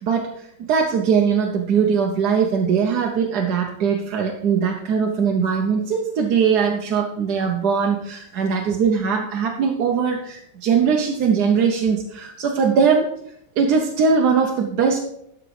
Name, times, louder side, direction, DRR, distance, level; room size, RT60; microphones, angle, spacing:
voice 1, 0.0-13.1 13.6-15.1, right 6 dB, 70° right, 2 dB, 1.3 m, -20 dB
13.0 x 5.0 x 4.8 m, 0.75 s
omnidirectional pair, 1.9 m